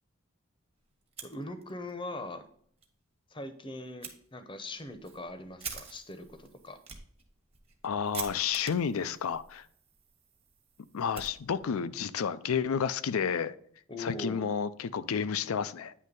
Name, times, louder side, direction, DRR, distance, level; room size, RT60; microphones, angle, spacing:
Fire, 1.0-1.9 2.3-2.4 2.8-2.9 4.0-4.2 4.7-11.9, right 6 dB, 30° right, 1.1 m, -46 dB
voice 1, 1.2-2.4 3.3-6.8 13.9-14.5, left 2 dB, 25° left, 0.7 m, -41 dB
voice 2, 7.8-9.7 10.9-13.6 14.0-15.9, left 7 dB, 85° left, 0.5 m, -31 dB
9.4 x 3.2 x 5.3 m
head